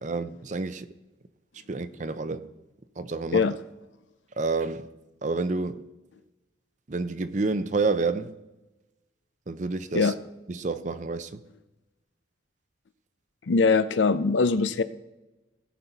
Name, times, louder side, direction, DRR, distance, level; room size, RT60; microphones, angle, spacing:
voice 1, 0.0-0.9 1.7-2.5 3.0-3.4 4.4-4.9 5.2-5.8 6.9-8.4 9.5-10.1 10.5-11.4, right 3 dB, 40° right, 0.5 m, -29 dB
voice 2, 13.5-14.8, left 4 dB, 80° left, 0.5 m, -22 dB
17.5 x 5.9 x 4.0 m
head